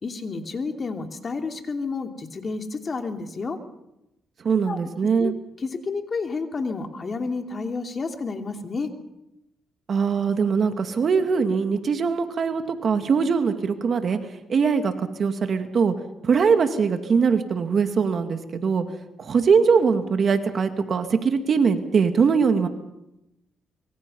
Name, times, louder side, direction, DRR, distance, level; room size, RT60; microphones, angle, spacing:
voice 1, 0.0-3.6 4.6-4.8 5.2-5.3 5.6-8.9, left 4 dB, 40° left, 4 dB, 2.8 m, -30 dB
voice 2, 4.4-5.3 9.9-14.2 14.5-15.9 16.2-18.8 19.2-22.7, right 5 dB, 50° right, 7 dB, 2.3 m, -21 dB
25.0 x 23.5 x 5.5 m, 0.88 s
cardioid pair, 90°, 0 cm